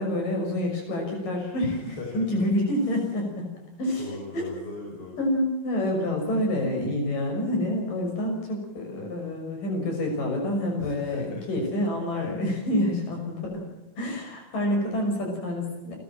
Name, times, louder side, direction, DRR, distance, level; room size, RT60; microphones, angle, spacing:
voice 1, 0.0-3.5 3.8-4.0 4.3-4.4 5.2-13.6 14.0-16.0, left 1 dB, 80° left, 2 dB, 7.9 m, -27 dB
voice 2, 1.7-2.5 2.8-3.0 4.0-5.2 10.8-11.4, left 3 dB, 40° left, 0 dB, 5.8 m, -39 dB
29.5 x 13.0 x 7.6 m, 1.1 s
omnidirectional pair, 3.8 m